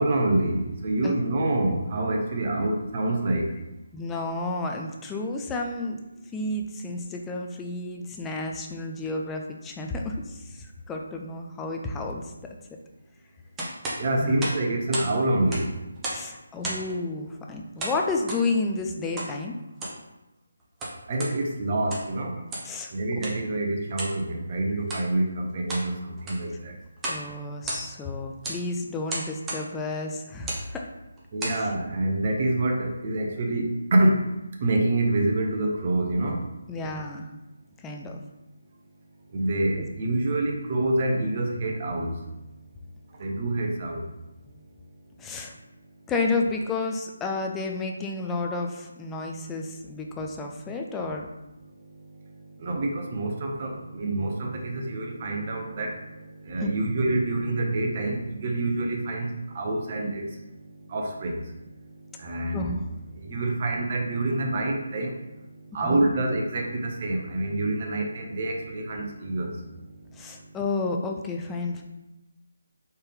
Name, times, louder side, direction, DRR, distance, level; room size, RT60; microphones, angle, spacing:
voice 1, 0.0-3.5 14.0-15.7 21.1-22.3 22.9-26.7 31.3-34.3 34.6-36.4 39.3-42.1 43.2-44.0 52.6-56.0 56.5-60.4 60.9-61.4 62.2-62.8 63.2-65.1 65.7-69.5, right 2 dB, 40° right, 1 dB, 0.9 m, -26 dB
voice 2, 3.9-6.0 6.3-12.3 14.2-14.5 16.1-19.6 22.4-22.9 24.7-24.8 27.1-30.9 31.4-31.7 36.7-37.3 37.8-38.2 45.2-45.5 46.1-51.3 56.6-56.7 62.5-62.8 65.8-66.1 70.1-71.8, left 3 dB, 10° left, 1 dB, 0.4 m, -31 dB
sound 1, 13.6-15.1 15.4-16.3 16.6-17.0 17.8-18.4 19.2-19.3 19.7-20.0 20.6-21.3 21.8-22.1 22.5-22.7 23.2-23.4 23.9-24.2 24.8-25.1 25.5-25.9 26.2-26.5 27.0-27.2 27.5-28.1 28.4-28.6 29.1-29.6 30.3-30.7 31.2-31.6, right 1 dB, 10° right, 0.9 m, -33 dB
4.3 x 3.4 x 3.6 m, 0.96 s
figure-of-eight pair, 155°, 0 cm